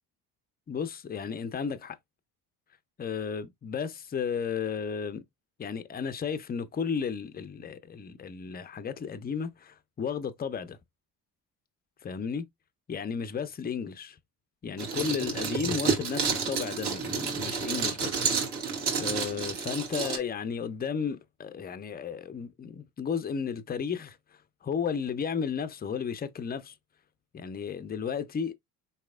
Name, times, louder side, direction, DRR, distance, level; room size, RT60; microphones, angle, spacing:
voice 1, 0.7-2.0 3.0-5.2 5.6-10.8 12.0-12.4 12.9-14.2 14.6-18.2 19.0-24.2 24.6-26.7 27.3-28.5, left 6 dB, 20° left, 0.5 m, -33 dB
sound 1, 14.8-20.2, right 5 dB, 55° right, 1.6 m, -30 dB
4.1 x 3.2 x 2.4 m
hypercardioid pair, 60°, 47 cm